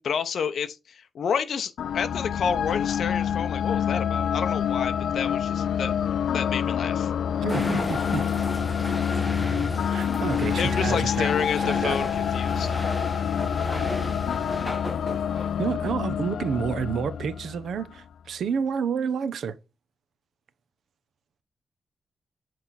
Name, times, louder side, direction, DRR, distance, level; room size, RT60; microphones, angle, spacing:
voice 1, 0.0-7.1 10.6-12.7, left 7 dB, 70° left, 0.7 m, -30 dB
sound 1, 1.8-18.0, left 8 dB, 85° left, 0.3 m, -27 dB
voice 2, 7.4-8.3 9.9-11.3 11.6-12.0 15.3-19.6, right 6 dB, 80° right, 0.8 m, -29 dB
sound 2, 7.5-15.7, equal, 5° left, 1.6 m, -34 dB
7.9 x 4.4 x 4.1 m
wide cardioid pair, 155°, 0 cm